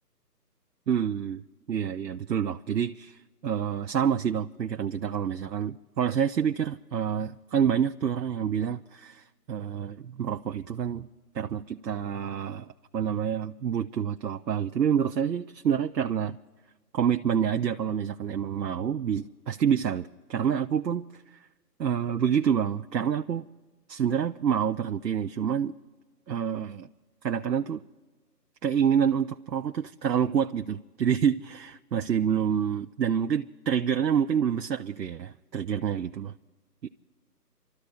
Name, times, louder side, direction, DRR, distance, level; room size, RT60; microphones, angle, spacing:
voice 1, 0.9-1.4 1.7-11.1 11.3-16.4 16.9-21.0 21.3-21.4 21.8-23.5 23.9-25.7 26.3-26.9 27.2-27.8 28.6-36.3 36.8-36.9, right 8 dB, 85° right, 0.7 m, -27 dB
29.0 x 13.0 x 3.3 m
figure-of-eight pair, 170°, 49 cm